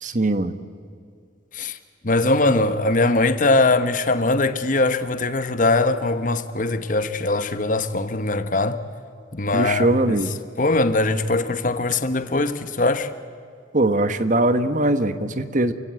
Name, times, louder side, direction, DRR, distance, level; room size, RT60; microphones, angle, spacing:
voice 1, 0.0-0.6 9.5-10.3 13.7-15.7, right 2 dB, 45° right, 1.2 m, -21 dB
voice 2, 2.0-8.8 9.3-10.2 10.6-13.1, left 2 dB, 45° left, 1.1 m, -21 dB
28.5 x 16.0 x 8.9 m
head